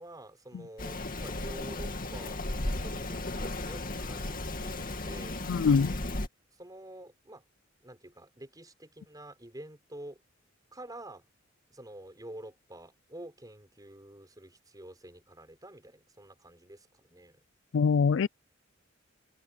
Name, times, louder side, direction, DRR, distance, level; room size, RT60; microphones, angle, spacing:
voice 1, 0.0-5.4 6.5-7.4 7.8-10.2 10.7-11.3 11.7-17.4, right 1 dB, 20° right, 5.0 m, -48 dB
Rain, 0.8-6.3, left 2 dB, 45° left, 2.4 m, -35 dB
voice 2, 5.5-5.9 17.7-18.3, left 5 dB, 65° left, 0.4 m, -23 dB
head